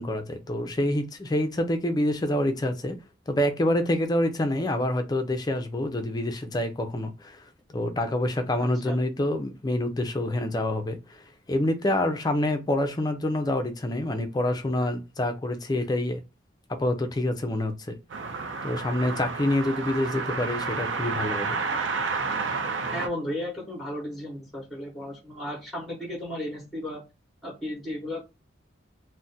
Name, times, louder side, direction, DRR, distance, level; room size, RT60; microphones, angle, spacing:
voice 1, 0.0-3.0 3.3-7.4 7.7-11.0 11.5-16.2 16.7-18.0 18.6-21.6, left 1 dB, 20° left, 0.4 m, -27 dB
voice 2, 8.6-9.0 22.9-27.0 27.4-28.2, left 1 dB, ahead, 0.8 m, -34 dB
sound 1, 18.1-23.1, right 4 dB, 70° right, 0.5 m, -30 dB
2.4 x 2.1 x 3.9 m
head